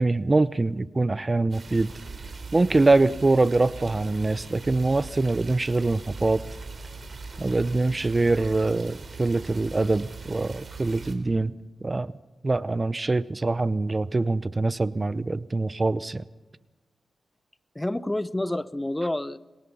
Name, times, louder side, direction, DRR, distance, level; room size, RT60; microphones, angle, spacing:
voice 1, 0.0-1.9 2.5-6.4 7.4-11.5 11.8-12.1 12.4-16.2, right 2 dB, 30° right, 16 dB, 0.7 m, -24 dB
sound 1, 1.5-11.1, right 4 dB, 50° right, 3.9 m, -41 dB
Bowed string instrument, 1.9-6.3, right 6 dB, 70° right, 7.3 m, -56 dB
voice 2, 17.7-19.4, left 1 dB, 15° left, 16 dB, 0.7 m, -28 dB
29.5 x 23.0 x 5.7 m, 1.2 s
cardioid pair, 60°, 0 cm